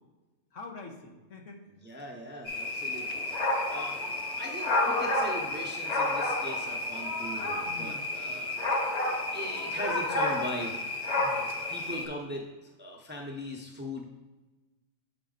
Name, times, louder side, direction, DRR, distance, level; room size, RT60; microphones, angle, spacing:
voice 1, 0.5-1.6 7.7-8.4 11.2-11.4, left 3 dB, 70° left, 1 dB, 1.3 m, -46 dB
voice 2, 1.7-3.3 3.7-4.0 4.4-8.5 9.3-11.3 11.7-14.1, equal, 10° right, -1 dB, 0.6 m, -40 dB
sound 1, 2.4-12.1, left 2 dB, 40° left, 0.7 m, -30 dB
7.5 x 4.1 x 3.9 m, 1.2 s
omnidirectional pair, 1.4 m